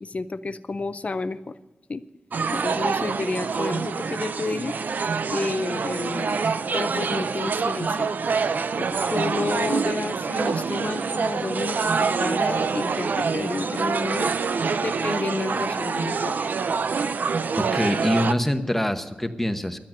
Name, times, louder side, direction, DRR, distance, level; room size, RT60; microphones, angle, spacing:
voice 1, 0.0-1.5 1.9-2.0 2.5-4.8 5.3-6.4 6.7-8.1 8.8-14.3 14.8-16.4, left 3 dB, 45° left, 13 dB, 0.6 m, -30 dB
sound 1, 2.3-18.3, right 5 dB, 70° right, 0.5 m, -26 dB
voice 2, 17.6-19.8, left 1 dB, 5° left, 7 dB, 1.0 m, -25 dB
12.0 x 8.5 x 9.0 m, 1.3 s
wide cardioid pair, 85°, 3 cm